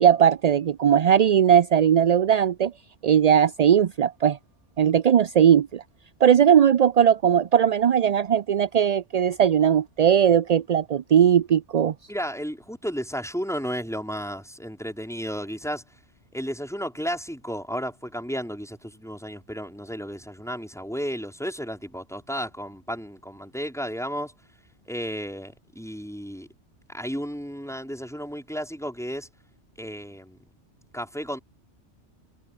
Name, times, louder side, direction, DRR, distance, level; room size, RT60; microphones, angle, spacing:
voice 1, 0.0-2.7 3.0-4.4 4.8-5.8 6.2-11.9, right 9 dB, 55° right, 0.4 m, -19 dB
voice 2, 12.1-15.8 16.3-24.3 24.9-26.5 26.9-29.3 29.8-30.4 30.9-31.4, equal, ahead, 4.4 m, -33 dB
omnidirectional pair, 1.2 m